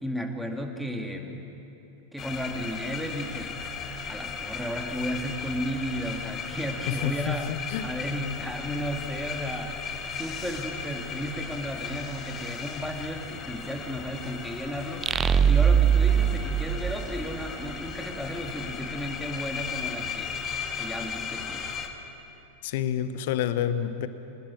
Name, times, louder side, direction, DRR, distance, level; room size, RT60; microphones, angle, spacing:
voice 1, 0.0-1.4 2.1-3.6 4.1-7.5 7.8-9.7 10.1-15.1 15.4-20.4 20.8-21.7, equal, ahead, 3 dB, 2.3 m, -34 dB
sound 1, 2.2-21.9, left 6 dB, 30° left, 1.8 m, -36 dB
voice 2, 6.9-7.4 7.7-7.9 22.6-24.1, left 10 dB, 50° left, 12 dB, 1.1 m, -28 dB
sound 2, 15.0-17.7, right 8 dB, 20° right, 0.5 m, -22 dB
24.0 x 19.5 x 6.2 m, 2.9 s
figure-of-eight pair, 90°, 0 cm